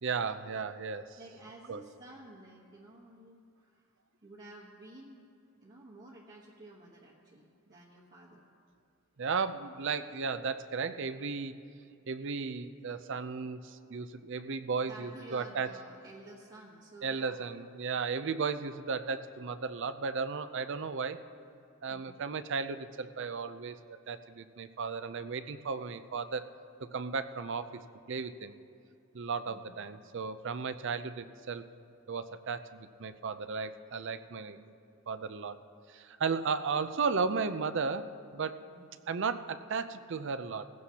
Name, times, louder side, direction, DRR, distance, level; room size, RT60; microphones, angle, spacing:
voice 1, 0.0-1.2 1.7-1.8 9.2-11.6 12.1-15.7 17.0-21.2 21.8-26.4 26.8-27.7 28.1-28.5 29.1-31.6 32.1-34.7 35.1-35.6 35.9-38.6 39.1-40.7, right 5 dB, 60° right, 12 dB, 0.5 m, -35 dB
voice 2, 1.2-3.9 4.2-5.3 5.6-8.4 14.8-17.4 21.9-22.2 29.4-29.9 36.3-36.9 38.7-39.0, right 2 dB, 45° right, -5 dB, 1.3 m, -52 dB
18.5 x 15.5 x 2.9 m, 2.4 s
head